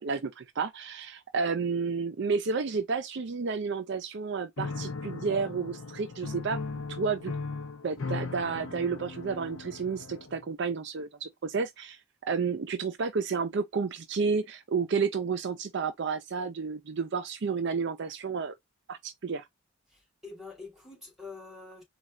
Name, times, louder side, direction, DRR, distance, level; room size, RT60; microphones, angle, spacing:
voice 1, 0.0-6.6 6.9-7.3 7.8-12.0 12.3-18.6 18.9-19.5, right 5 dB, 60° right, 0.5 m, -31 dB
Piano, 4.6-10.5, left 4 dB, 80° left, 0.7 m, -38 dB
voice 2, 19.9-21.8, left 4 dB, ahead, 2.4 m, -46 dB
4.2 x 2.3 x 3.6 m
head